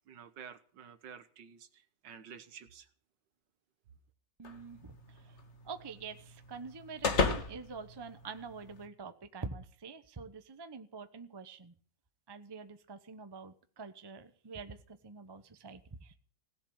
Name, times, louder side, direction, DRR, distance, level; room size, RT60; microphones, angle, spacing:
voice 1, 0.1-1.7 2.0-2.9, right 7 dB, 70° right, 11 dB, 1.7 m, -50 dB
sound 1, 4.4-8.9, left 4 dB, 40° left, 1.6 m, -36 dB
voice 2, 4.4-5.4 5.6-11.7 12.3-16.1, right 4 dB, 20° right, 9 dB, 0.7 m, -46 dB
17.0 x 7.3 x 8.7 m, 0.43 s
omnidirectional pair, 2.0 m